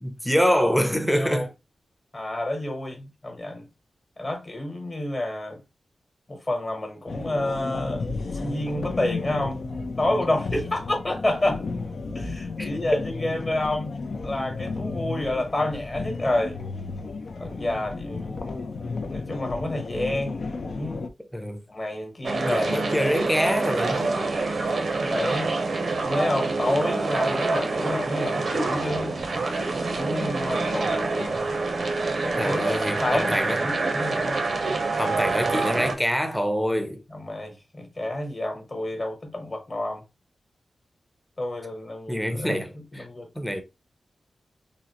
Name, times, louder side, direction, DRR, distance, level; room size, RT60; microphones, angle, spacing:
voice 1, 0.0-1.5 12.6-13.0 21.2-21.6 22.4-24.3 32.3-33.6 35.0-37.0 42.1-43.1 43.4-43.6, equal, 5° left, 0.6 m, -25 dB
voice 2, 1.2-1.5 2.1-3.6 4.2-5.6 6.3-8.0 8.4-9.6 10.0-11.6 12.1-13.9 14.2-16.6 17.4-18.4 19.1-21.1 21.7-23.2 25.0-25.5 26.0-29.1 29.9-31.5 32.2-32.7 33.0-34.4 37.1-40.0 41.4-42.6 42.9-43.3, left 1 dB, 30° left, 1.1 m, -29 dB
sound 1, 7.1-21.1, left 3 dB, 65° left, 0.4 m, -33 dB
sound 2, 22.2-35.9, right 3 dB, 60° right, 0.6 m, -26 dB
3.8 x 2.1 x 2.8 m
wide cardioid pair, 100°, 0 cm